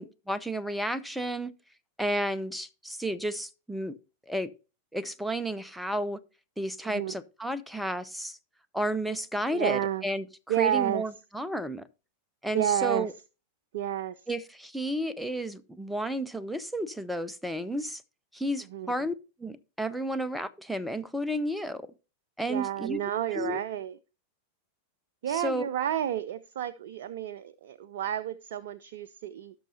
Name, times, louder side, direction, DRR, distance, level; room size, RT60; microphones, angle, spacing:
voice 1, 0.0-1.5 2.0-3.9 4.3-4.5 4.9-6.2 6.6-8.4 8.7-10.3 10.6-11.8 12.4-13.1 14.3-18.0 18.3-19.1 19.4-21.9 22.4-23.0 23.3-23.6 25.3-25.7, right 1 dB, ahead, 0.6 m, -32 dB
voice 2, 6.8-7.1 9.5-10.1 10.5-11.0 12.5-13.1 13.7-14.3 18.7-18.9 22.5-24.0 25.2-29.5, right 10 dB, 55° right, 0.4 m, -30 dB
16.5 x 6.2 x 2.8 m
figure-of-eight pair, 90°, 0 cm